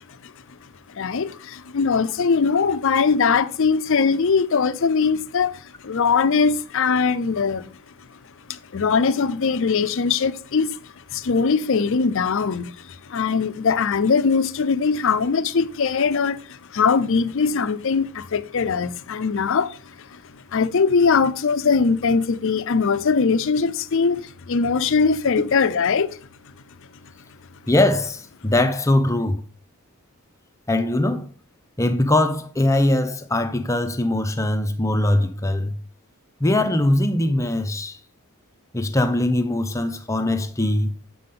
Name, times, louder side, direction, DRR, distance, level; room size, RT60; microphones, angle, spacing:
voice 1, 0.9-7.7 8.5-26.2, left 5 dB, 60° left, 0.5 m, -21 dB
voice 2, 27.7-29.4 30.7-31.3 31.8-35.8 36.4-38.0 38.7-40.9, left 1 dB, 15° left, 0.7 m, -21 dB
7.6 x 5.8 x 3.7 m
head